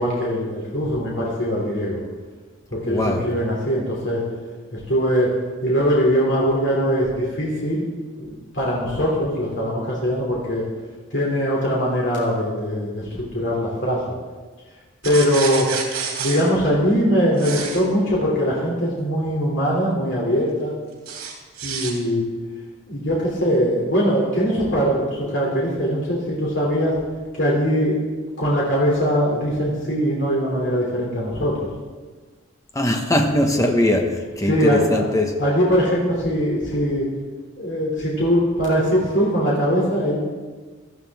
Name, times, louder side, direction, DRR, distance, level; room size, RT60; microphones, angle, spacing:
voice 1, 0.0-2.0 2.7-4.2 4.7-5.3 5.6-7.8 8.2-10.6 11.1-14.0 15.0-15.7 16.2-20.7 21.6-22.3 22.9-26.9 27.3-28.0 28.4-31.7 34.4-35.0 35.4-37.1 37.6-40.2, equal, 55° left, -4 dB, 2.9 m, -21 dB
voice 2, 2.9-3.2 32.7-35.3, left 1 dB, 15° left, 3 dB, 1.2 m, -20 dB
sound 1, 15.0-16.4 17.4-17.8 21.1-21.9, right 6 dB, 80° right, 3.0 m, -29 dB
16.0 x 13.5 x 3.6 m, 1.4 s
head